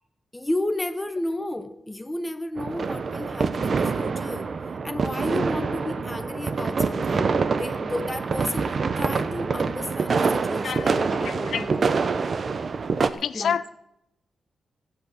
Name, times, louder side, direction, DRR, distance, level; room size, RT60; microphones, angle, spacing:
voice 1, 0.3-4.5 4.8-8.7 9.0-12.0 13.3-13.7, left 1 dB, 10° left, 9 dB, 0.9 m, -32 dB
sound 1, 2.6-13.1, right 4 dB, 50° right, 0.7 m, -26 dB
voice 2, 11.2-11.7 13.2-13.7, left 7 dB, 75° left, 15 dB, 0.4 m, -27 dB
15.0 x 8.2 x 6.6 m, 0.80 s
wide cardioid pair, 110°, 0 cm